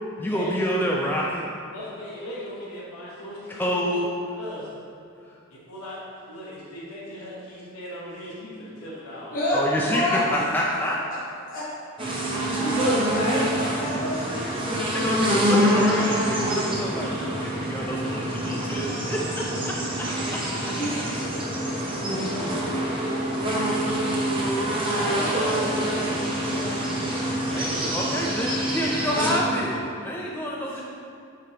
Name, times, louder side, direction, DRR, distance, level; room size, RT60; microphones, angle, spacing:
voice 1, 0.2-1.5 3.5-4.1 9.5-11.0 14.9-20.1 20.6-20.7 27.5-30.8, equal, 10° left, -3 dB, 0.4 m, -28 dB
voice 2, 1.7-3.9 4.4-4.7 5.7-9.3 19.5-19.9 21.7-22.8 27.4-27.8, equal, 75° left, -7 dB, 1.2 m, -38 dB
voice 3, 9.3-10.4 11.5-11.6 12.0-15.0 15.3-16.2 18.4-18.6 20.8-21.0 24.9-26.8 30.7-30.8, left 1 dB, 40° left, -9 dB, 1.1 m, -29 dB
sound 1, 12.0-29.4, equal, 25° right, 0.8 m, -26 dB
7.5 x 5.2 x 2.9 m, 2.5 s
head